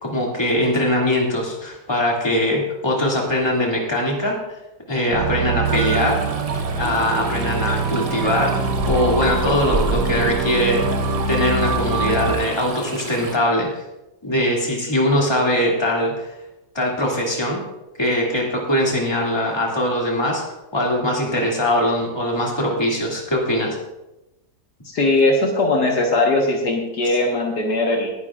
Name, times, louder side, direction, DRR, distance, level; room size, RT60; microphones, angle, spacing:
voice 1, 0.0-4.4 4.9-6.2 6.7-8.5 8.8-10.8 11.3-13.7 14.2-16.3 16.7-17.6 18.0-20.4 20.7-23.8, left 1 dB, 15° left, -2 dB, 2.4 m, -21 dB
sound 1, 5.1-12.3, right 4 dB, 80° right, 1.5 m, -24 dB
Stream, 5.6-13.3, right 2 dB, 30° right, 0.7 m, -32 dB
voice 2, 24.9-28.1, left 2 dB, 75° left, 0 dB, 2.0 m, -19 dB
19.5 x 10.5 x 2.5 m, 0.95 s
omnidirectional pair, 1.8 m